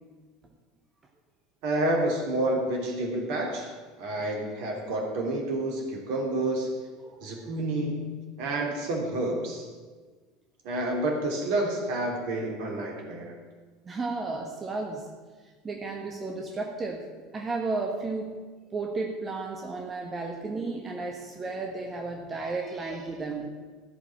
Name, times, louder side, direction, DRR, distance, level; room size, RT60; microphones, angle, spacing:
voice 1, 1.6-3.7 4.0-6.7 7.2-9.7 10.6-13.4, right 1 dB, 55° right, 1 dB, 3.0 m, -29 dB
voice 2, 7.0-7.5 13.8-15.1 15.6-17.1 17.3-18.4 18.7-23.5, right 3 dB, 25° right, 1 dB, 1.6 m, -33 dB
15.0 x 5.9 x 9.0 m, 1.4 s
figure-of-eight pair, 70°, 0 cm